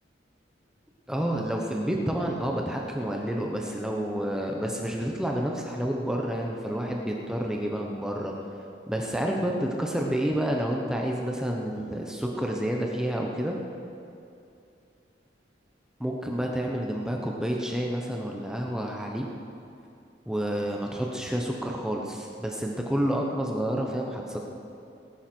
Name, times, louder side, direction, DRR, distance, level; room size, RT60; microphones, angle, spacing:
voice 1, 1.1-8.3 8.9-13.6 16.0-19.3 20.3-24.5, equal, 5° right, 0 dB, 1.0 m, -29 dB
19.0 x 11.5 x 4.5 m, 2.6 s
head